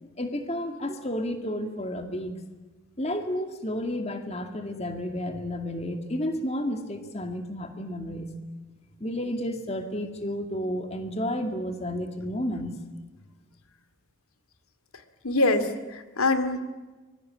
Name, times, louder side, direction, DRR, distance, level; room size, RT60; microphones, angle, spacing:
voice 1, 0.0-2.3 3.0-8.3 9.0-12.7, left 1 dB, 30° left, 6 dB, 2.3 m, -31 dB
voice 2, 15.2-16.6, left 2 dB, 90° left, 10 dB, 2.4 m, -24 dB
25.0 x 22.5 x 8.8 m, 1.2 s
head